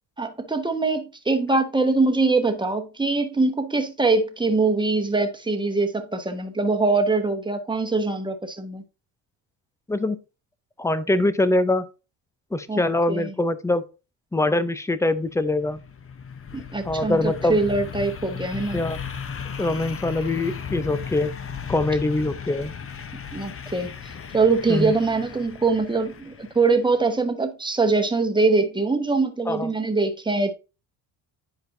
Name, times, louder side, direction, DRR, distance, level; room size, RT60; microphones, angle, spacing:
voice 1, 0.2-8.8 12.7-12.8 13.1-13.3 16.5-18.8 23.3-23.9 24.3-30.5, right 3 dB, 10° right, 1.2 m, -23 dB
voice 2, 10.8-11.9 12.5-13.8 14.3-15.8 16.8-17.6 18.7-19.0 19.6-21.3 21.7-22.7 24.7-25.0 29.5-29.7, left 2 dB, 5° left, 0.6 m, -23 dB
sound 1, 15.2-26.9, left 6 dB, 30° left, 0.9 m, -36 dB
10.5 x 4.7 x 2.6 m
supercardioid pair, 90°, 46 cm